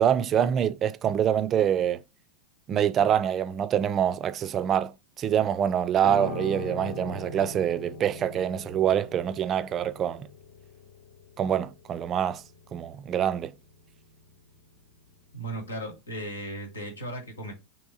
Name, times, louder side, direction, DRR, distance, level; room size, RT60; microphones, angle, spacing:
voice 1, 0.0-2.0 2.7-10.3 11.4-12.4 12.7-13.5, right 9 dB, 35° right, 0.4 m, -25 dB
Piano, 6.0-15.4 15.7-15.9, left 2 dB, 60° left, 0.8 m, -41 dB
voice 2, 15.3-17.5, right 1 dB, 85° left, 1.3 m, -36 dB
3.5 x 2.9 x 4.1 m
hypercardioid pair, 90°, 0 cm